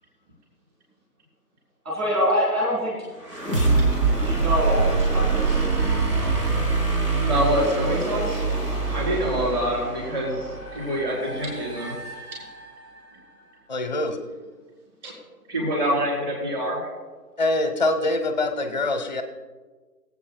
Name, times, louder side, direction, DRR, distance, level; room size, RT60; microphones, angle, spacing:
voice 1, 1.8-3.0 4.2-5.6, equal, 10° right, -5 dB, 2.8 m, -24 dB
sound 1, 3.2-13.0, right 3 dB, 90° right, 2.7 m, -25 dB
voice 2, 7.2-8.4 8.9-11.9 15.0-15.1 15.5-16.8, equal, 30° right, -3 dB, 3.9 m, -26 dB
voice 3, 13.7-14.2 17.4-19.2, left 2 dB, 30° left, 7 dB, 0.6 m, -24 dB
23.0 x 8.3 x 2.2 m, 1.3 s
figure-of-eight pair, 145°, 47 cm